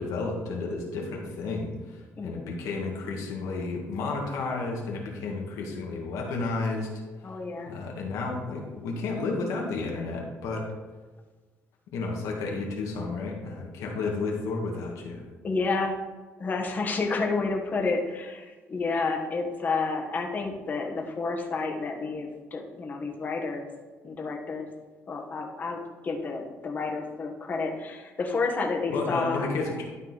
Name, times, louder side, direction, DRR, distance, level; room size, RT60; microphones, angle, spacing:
voice 1, 0.0-6.9 7.7-10.7 11.9-15.2 28.9-29.9, left 3 dB, 85° left, 0 dB, 1.9 m, -32 dB
voice 2, 2.2-2.5 7.2-7.7 14.0-14.1 15.4-16.0 16.4-23.7 24.0-24.7 25.1-25.8 26.0-29.5, left 3 dB, 35° left, 1 dB, 1.4 m, -30 dB
12.0 x 4.3 x 4.1 m, 1.3 s
cardioid pair, 130°, 5 cm